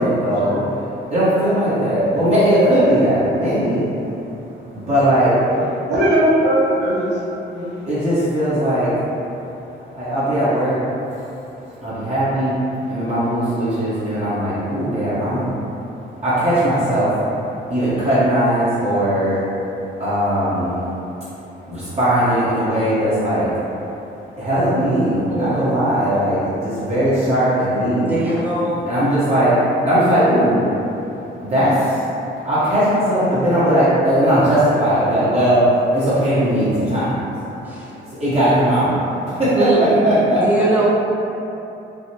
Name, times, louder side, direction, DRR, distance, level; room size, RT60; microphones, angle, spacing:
voice 1, 0.0-4.0 4.7-5.4 7.6-9.3 9.7-11.1 11.8-15.5 16.2-19.4 20.0-21.2 21.7-23.6 24.3-28.2 28.9-30.7 30.9-31.0 31.4-32.1 32.4-37.2 38.2-39.0 39.2-40.6, equal, 35° right, -12 dB, 1.0 m, -19 dB
voice 2, 1.7-2.1 2.5-2.6 5.5-7.2 7.5-7.7, right 1 dB, 60° right, -7 dB, 0.7 m, -19 dB
voice 3, 25.3-25.8 28.0-28.9 37.6-38.0 39.5-40.8, right 2 dB, 10° right, -7 dB, 0.7 m, -21 dB
3.4 x 2.0 x 2.8 m, 2.9 s
cardioid pair, 90°, 20 cm